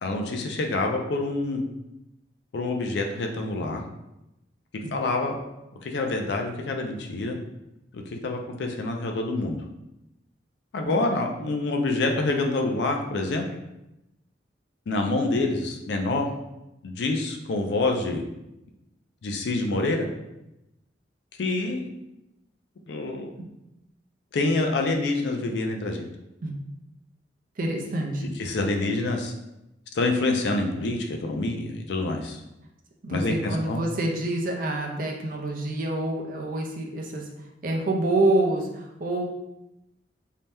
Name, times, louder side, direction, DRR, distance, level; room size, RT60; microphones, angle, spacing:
voice 1, 0.0-1.6 2.5-3.8 4.9-5.4 5.8-7.4 7.9-9.6 10.7-13.4 14.9-16.3 16.8-18.2 19.2-20.1 21.4-21.9 22.9-23.3 24.3-26.1 28.4-29.3 30.0-32.4 33.1-33.8, left 2 dB, 70° left, 3 dB, 0.4 m, -26 dB
voice 2, 27.6-28.2 28.8-28.9 33.0-37.3 37.6-39.3, right 2 dB, 50° right, 1 dB, 0.5 m, -27 dB
2.7 x 2.2 x 3.3 m, 0.90 s
head